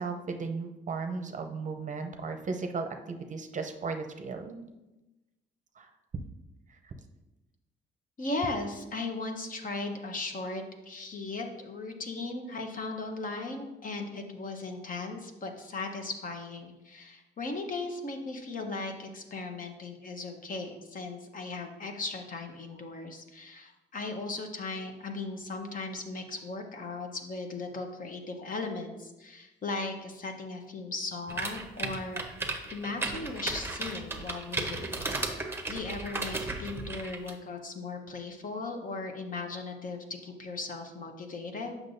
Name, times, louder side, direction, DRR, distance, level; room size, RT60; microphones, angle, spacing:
voice 1, 0.0-4.6 5.8-5.9 6.7-6.9 8.4-8.5 8.8-8.9, right 4 dB, 40° right, 5 dB, 0.7 m, -36 dB
voice 2, 8.2-32.2 32.7-35.4 35.7-41.8, left 3 dB, 45° left, 4 dB, 1.0 m, -37 dB
sound 1, 31.3-37.3, right 3 dB, 10° right, 0.9 m, -35 dB
7.5 x 6.0 x 2.7 m, 1.0 s
cardioid pair, 90°, 20 cm